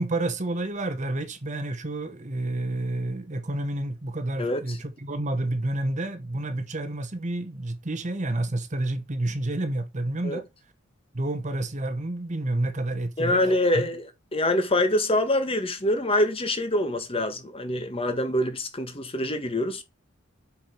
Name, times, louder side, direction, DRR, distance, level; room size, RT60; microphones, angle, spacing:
voice 1, 0.0-10.5 11.1-13.4 13.7-13.9, right 2 dB, 35° right, 1.0 m, -29 dB
voice 2, 4.4-4.8 10.2-10.4 13.2-19.8, left 1 dB, 25° left, 1.4 m, -25 dB
7.7 x 4.7 x 5.2 m
head